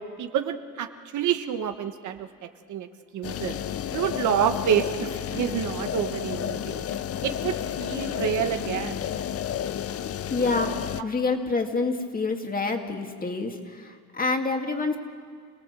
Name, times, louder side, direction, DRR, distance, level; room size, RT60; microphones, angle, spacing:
voice 1, 0.2-0.9 1.1-2.3 2.7-2.9 3.1-3.5 3.9-6.8 7.2-9.1, right 9 dB, 75° right, 8 dB, 1.3 m, -28 dB
sound 1, 3.2-11.0, left 9 dB, 50° left, 0.7 m, -31 dB
voice 2, 10.3-15.0, left 3 dB, 30° left, 4 dB, 2.4 m, -27 dB
27.5 x 17.5 x 7.6 m, 2.1 s
cardioid pair, 90°, 30 cm